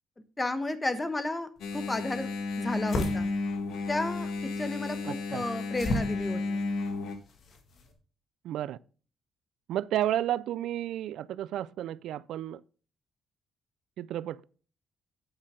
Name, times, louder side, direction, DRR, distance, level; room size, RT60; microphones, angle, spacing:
voice 1, 0.4-2.3 2.6-3.3 3.9-4.3 4.6-6.6, left 2 dB, 20° left, 1.1 m, -33 dB
Engine, 1.6-7.1, left 3 dB, 80° left, 1.3 m, -33 dB
sound 1, 1.6-7.9, left 1 dB, 55° left, 1.8 m, -39 dB
voice 2, 5.0-5.4 8.4-8.8 9.7-12.6 14.0-14.4, right 12 dB, 80° right, 0.3 m, -32 dB
8.8 x 5.7 x 5.0 m
cardioid pair, 90°, 0 cm